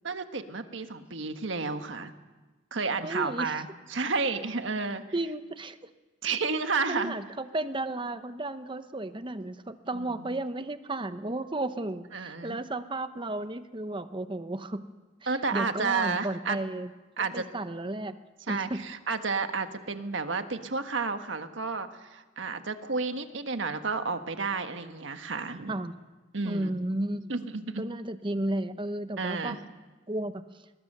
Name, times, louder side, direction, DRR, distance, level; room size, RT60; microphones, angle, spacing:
voice 1, 0.0-2.1 2.7-5.0 6.2-7.1 9.9-10.3 12.1-12.6 15.3-16.6 17.2-17.4 18.5-25.7 26.3-26.7 27.3-27.9 29.2-29.6, right 4 dB, 85° right, 8 dB, 1.4 m, -31 dB
voice 2, 3.0-3.6 5.1-5.8 6.9-14.8 15.2-16.9 17.2-18.1 18.5-18.8 25.7-26.0 26.4-27.3 27.8-29.6 30.1-30.4, right 2 dB, 25° right, 11 dB, 0.9 m, -33 dB
24.0 x 21.0 x 6.7 m, 1.3 s
head